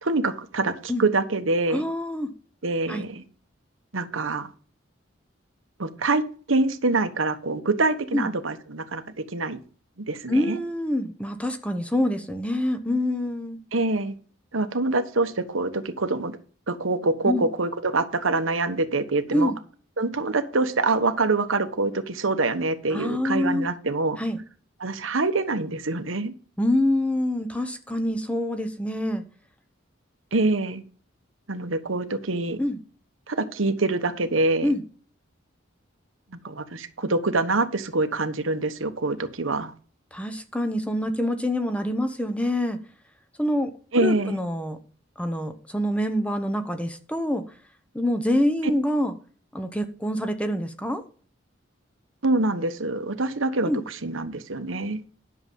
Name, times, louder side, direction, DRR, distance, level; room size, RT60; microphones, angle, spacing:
voice 1, 0.0-1.9 2.6-3.2 3.9-4.5 5.8-9.0 9.3-9.6 10.1-10.6 13.7-14.1 14.5-16.3 16.7-19.5 20.0-24.2 24.8-26.3 30.3-30.8 31.5-32.6 33.3-34.7 36.4-39.7 43.9-44.4 52.2-55.0, right 3 dB, 85° right, 1.2 m, -25 dB
voice 2, 1.7-2.3 2.9-3.1 8.1-8.3 10.3-13.6 17.2-17.4 19.3-19.6 22.9-23.7 24.2-24.4 26.6-29.2 32.6-32.8 34.6-34.8 40.1-42.8 43.4-44.8 45.2-47.4 47.9-49.1 49.5-51.0 53.7-53.8, left 1 dB, 5° left, 0.9 m, -26 dB
11.0 x 7.0 x 5.3 m
head